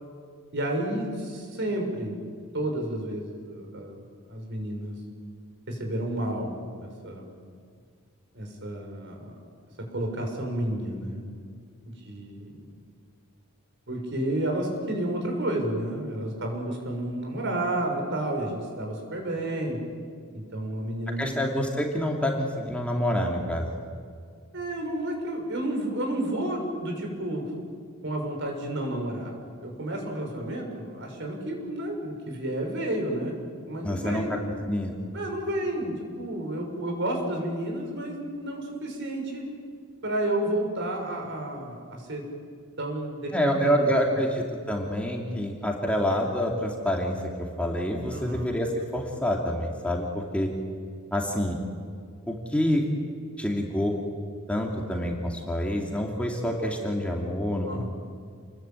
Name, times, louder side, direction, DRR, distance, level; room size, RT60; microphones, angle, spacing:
voice 1, 0.5-2.1 2.5-4.0 4.3-5.0 5.7-6.5 6.8-7.2 8.3-9.3 9.8-11.2 11.8-12.6 13.9-19.8 20.3-21.3 24.5-27.5 28.0-29.3 29.6-33.4 33.7-34.3 35.1-39.5 40.0-42.3 42.8-43.9 48.1-48.5 57.7-57.9, right 1 dB, 55° right, 2 dB, 6.2 m, -31 dB
voice 2, 21.2-23.7 33.8-34.4 34.7-35.0 43.3-50.5 51.1-51.6 52.3-52.8 53.4-54.0 54.5-57.8, equal, 5° left, 0 dB, 2.7 m, -27 dB
29.0 x 21.5 x 9.0 m, 2.1 s
head